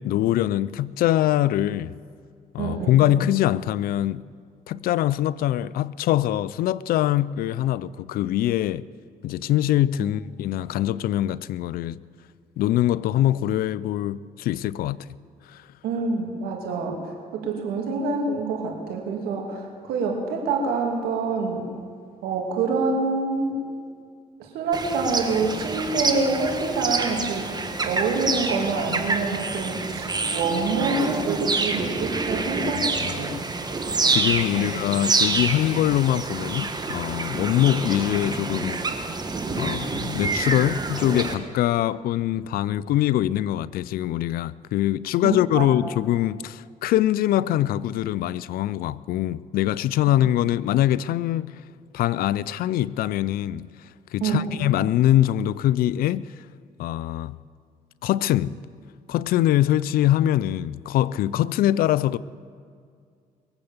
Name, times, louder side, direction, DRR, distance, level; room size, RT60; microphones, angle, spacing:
voice 1, 0.0-1.9 2.5-4.2 4.7-8.9 9.2-12.0 12.6-15.0 15.5-15.6 32.8-33.4 34.1-38.8 39.6-51.5 51.9-53.7 54.1-56.3 56.8-57.4 58.0-58.6 59.1-62.2, left 13 dB, 75° left, 0.5 m, -23 dB
voice 2, 2.6-3.1 15.8-21.7 22.2-23.6 24.4-27.5 27.8-33.3 34.5-34.7 45.2-45.7 54.2-54.5, right 4 dB, 85° right, 2.7 m, -26 dB
sound 1, 24.7-41.3, right 3 dB, 25° right, 1.5 m, -27 dB
22.0 x 8.1 x 7.2 m
cardioid pair, 80°, 15 cm